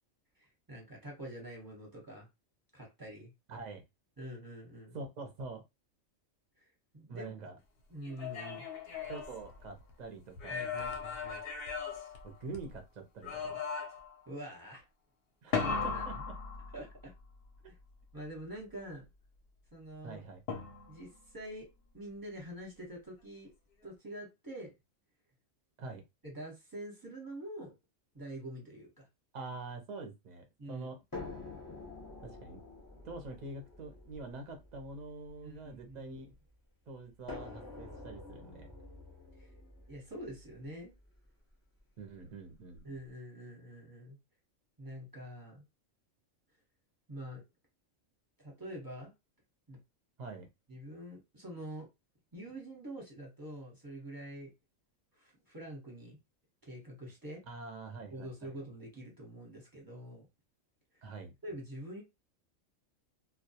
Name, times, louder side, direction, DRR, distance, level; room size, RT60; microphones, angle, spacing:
voice 1, 0.4-2.3 2.7-3.3 4.2-5.0 6.9-7.5 7.9-8.6 10.5-11.4 14.3-14.8 15.6-16.2 16.7-17.1 17.7-17.8 18.1-19.0 19.7-20.2 20.9-21.7 21.9-23.5 23.8-24.7 26.2-27.7 28.1-29.1 30.6-30.9 35.4-36.2 39.4-39.5 39.9-40.9 42.8-44.2 44.8-45.6 47.1-47.4 48.4-49.1 49.7-49.8 50.7-51.9 52.3-54.5 55.2-56.2 56.6-57.4 58.1-60.3 61.4-62.0, right 1 dB, 20° right, -1 dB, 0.8 m, -46 dB
voice 2, 3.5-3.8 4.9-5.6 7.1-7.5 9.1-10.7 12.2-13.6 15.4-16.4 20.0-20.4 25.8-26.0 29.3-31.0 32.2-32.6 33.0-36.3 36.9-38.7 42.0-42.8 50.2-50.5 57.5-58.6 61.0-61.3, right 3 dB, 45° right, 4 dB, 0.5 m, -45 dB
sound 1, 8.0-9.9 10.4-12.8 13.2-14.2 15.5-17.1 20.5-21.1, left 5 dB, 60° left, 0.7 m, -38 dB
sound 2, 31.1-36.3 37.3-41.2 42.2-42.3 42.7-42.8, left 3 dB, 25° left, 0.5 m, -48 dB
2.2 x 2.1 x 2.7 m, 0.23 s
omnidirectional pair, 1.4 m